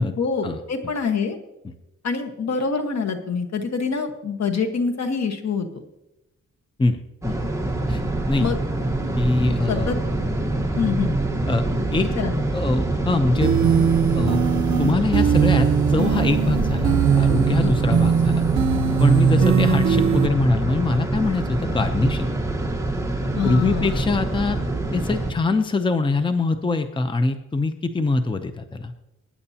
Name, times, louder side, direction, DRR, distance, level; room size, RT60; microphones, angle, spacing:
voice 1, 0.0-1.4 2.0-5.7 8.4-8.6 9.7-10.0 10.8-11.2 12.1-12.4 17.6-17.8 23.4-24.0, left 5 dB, 60° left, 5 dB, 1.4 m, -25 dB
voice 2, 6.8-7.4 7.9-8.0 8.3-8.5 9.2-9.9 10.5-10.7 11.5-11.6 11.9-12.1 12.5-13.5 14.1-14.4 14.8-18.4 19.0-22.3 23.4-24.6 24.9-28.9, left 3 dB, 15° left, 8 dB, 0.7 m, -23 dB
sound 1, 7.2-25.3, right 2 dB, 10° right, 1.3 m, -25 dB
sound 2, 13.4-20.3, right 7 dB, 70° right, 0.8 m, -20 dB
20.5 x 9.8 x 2.9 m, 0.91 s
wide cardioid pair, 115°, 30 cm